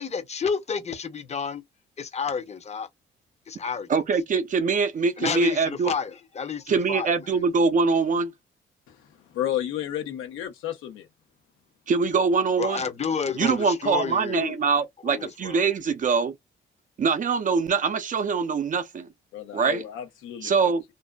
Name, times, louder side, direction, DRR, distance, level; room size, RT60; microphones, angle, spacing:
voice 1, 0.0-1.6 2.0-2.9 3.5-3.9 5.2-7.5 12.6-14.6 15.1-15.7, left 6 dB, 35° left, 0.7 m, -30 dB
voice 2, 3.9-5.9 6.7-8.3 11.9-12.8 13.4-16.3 17.0-19.1 19.5-19.8 20.4-20.8, right 5 dB, 40° right, 0.5 m, -23 dB
voice 3, 9.3-11.1 19.3-20.5, left 11 dB, 90° left, 0.8 m, -31 dB
2.5 x 2.4 x 2.2 m
cardioid pair, 90°, 20 cm